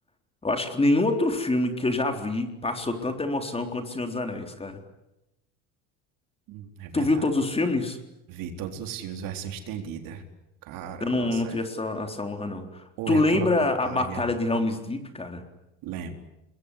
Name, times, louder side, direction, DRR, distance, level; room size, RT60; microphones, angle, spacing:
voice 1, 0.4-4.8 6.9-8.0 11.0-15.4, left 2 dB, 15° left, 6 dB, 3.9 m, -26 dB
voice 2, 6.5-7.3 8.3-10.2 10.6-11.6 13.0-13.5 13.8-14.2 15.8-16.1, right 8 dB, 65° right, 5 dB, 4.1 m, -35 dB
26.5 x 22.0 x 10.0 m, 0.91 s
supercardioid pair, 95°, 37 cm